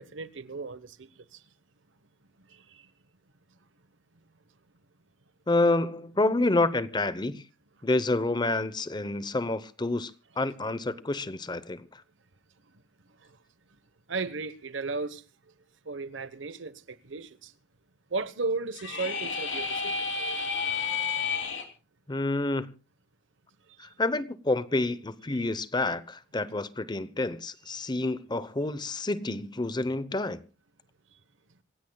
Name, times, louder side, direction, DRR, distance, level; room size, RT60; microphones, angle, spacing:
voice 1, 0.0-1.4 2.5-2.9 13.2-13.4 14.1-15.2 15.8-17.5 18.1-20.4 23.7-23.9 27.8-27.9, right 3 dB, 80° right, 1.1 m, -36 dB
voice 2, 5.5-7.4 7.8-10.1 10.4-11.8 22.1-22.7 23.8-30.4, left 2 dB, 25° left, 0.8 m, -28 dB
sound 1, 18.7-21.6, left 5 dB, 70° left, 3.0 m, -31 dB
26.5 x 16.5 x 2.3 m
head